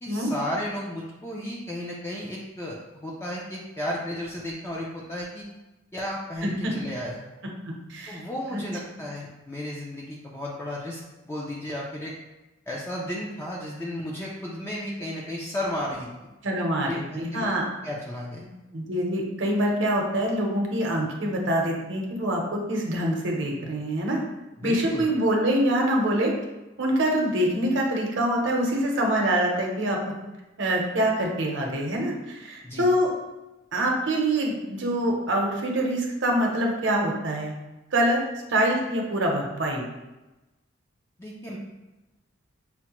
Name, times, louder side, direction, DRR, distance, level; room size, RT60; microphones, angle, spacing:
voice 1, 0.0-5.5 5.9-7.3 8.1-11.0 11.3-12.1 12.7-16.1 16.8-17.5 17.8-18.5 24.6-25.0 32.6-32.9 41.2-41.6, left 1 dB, 15° left, -4 dB, 0.4 m, -33 dB
voice 2, 6.4-6.7 7.9-8.2 8.5-8.6 16.4-17.6 18.7-24.2 24.6-26.3 26.8-30.0 30.6-33.1 33.7-37.5 37.9-38.2 38.5-39.8, right 1 dB, 65° right, 0 dB, 0.8 m, -25 dB
5.6 x 2.1 x 2.9 m, 1.1 s
head